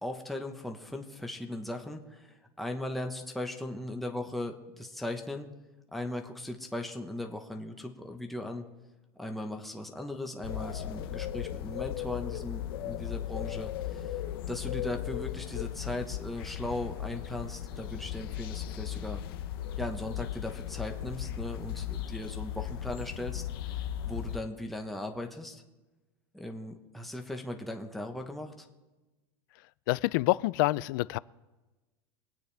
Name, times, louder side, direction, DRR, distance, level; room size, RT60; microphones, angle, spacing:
voice 1, 0.0-5.5 5.9-8.7 9.1-14.2 14.5-19.2 19.8-23.8 24.0-25.6 26.3-28.7, left 1 dB, ahead, 3 dB, 1.1 m, -38 dB
sound 1, 10.4-24.4, left 11 dB, 80° left, 0.8 m, -37 dB
voice 2, 29.9-31.2, left 19 dB, 60° left, 20 dB, 0.4 m, -27 dB
23.5 x 9.1 x 3.4 m, 1.1 s
supercardioid pair, 150°, 12 cm